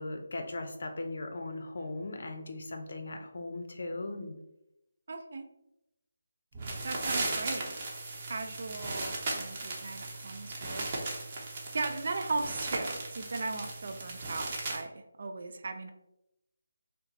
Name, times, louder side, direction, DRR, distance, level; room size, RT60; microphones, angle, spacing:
voice 1, 0.0-4.3, left 2 dB, 60° left, 5 dB, 0.7 m, -38 dB
voice 2, 5.1-5.5 6.8-7.7 8.3-10.9 11.7-15.9, right 3 dB, 55° right, 6 dB, 0.5 m, -37 dB
sound 1, 6.5-14.8, right 2 dB, 30° right, 0.9 m, -37 dB
5.6 x 2.1 x 2.9 m, 0.88 s
figure-of-eight pair, 165°, 0 cm